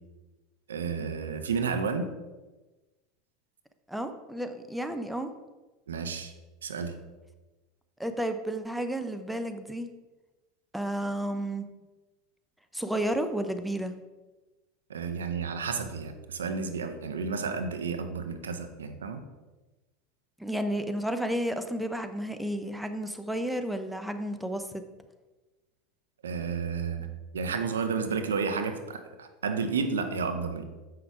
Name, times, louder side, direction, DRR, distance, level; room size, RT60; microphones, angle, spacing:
voice 1, 0.7-2.1 5.9-6.3 6.6-6.9 14.9-19.2 26.2-27.1 27.3-30.6, right 5 dB, 90° right, 8 dB, 0.8 m, -31 dB
voice 2, 3.9-5.3 8.0-9.9 10.7-11.7 12.7-13.9 20.4-24.7, right 1 dB, 5° right, 8 dB, 0.7 m, -32 dB
7.8 x 5.8 x 4.7 m, 1.2 s
hypercardioid pair, 90°, 0 cm